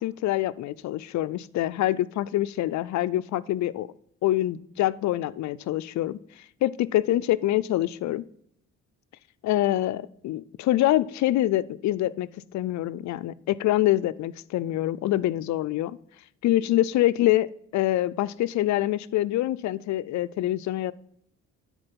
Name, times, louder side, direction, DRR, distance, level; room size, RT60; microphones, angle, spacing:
voice 1, 0.0-3.9 4.2-6.2 6.6-8.2 9.4-16.0 16.4-17.5 17.7-20.9, left 14 dB, 65° left, 0.5 m, -25 dB
9.8 x 4.4 x 5.3 m
cardioid pair, 90°, 30 cm